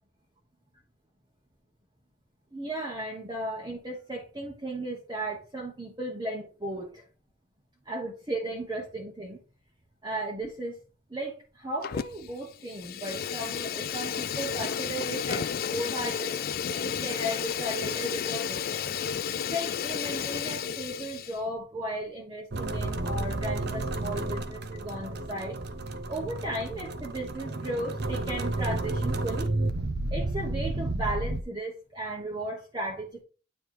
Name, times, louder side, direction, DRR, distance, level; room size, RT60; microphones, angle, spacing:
voice 1, 2.5-7.0 7.8-9.4 10.0-10.8 11.1-16.4 16.7-18.8 19.5-25.6 26.1-29.6 30.1-33.2, right 1 dB, 20° right, -2 dB, 1.1 m, -35 dB
Fire, 11.8-12.3 12.6-21.4, left 8 dB, 45° left, 0.3 m, -32 dB
sound 1, 22.5-31.4, right 2 dB, 50° right, 0.7 m, -31 dB
9.1 x 3.3 x 4.5 m, 0.35 s
head